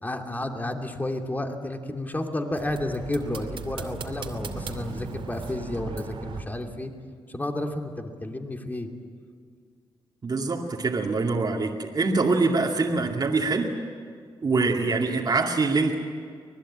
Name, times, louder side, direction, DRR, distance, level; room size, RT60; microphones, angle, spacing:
voice 1, 0.0-6.9 7.3-8.9, left 1 dB, 20° left, 4 dB, 2.6 m, -31 dB
sound 1, 2.6-6.4, right 4 dB, 65° right, 2.6 m, -37 dB
voice 2, 10.2-13.7 14.4-15.9, right 3 dB, 45° right, -2 dB, 2.4 m, -24 dB
25.0 x 20.0 x 8.7 m, 2.1 s
cardioid pair, 90°, 10 cm